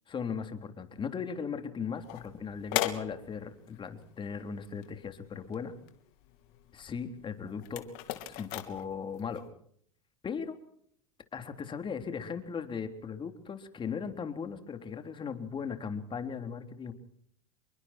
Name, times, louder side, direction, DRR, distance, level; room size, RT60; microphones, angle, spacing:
voice 1, 0.1-5.7 6.7-7.8 8.3-9.4 10.2-10.6 11.3-16.9, left 6 dB, 30° left, 7 dB, 3.7 m, -38 dB
sound 1, 1.9-9.5, left 15 dB, 60° left, 3.2 m, -40 dB
28.0 x 23.0 x 4.5 m, 0.67 s
hypercardioid pair, 90°, 17 cm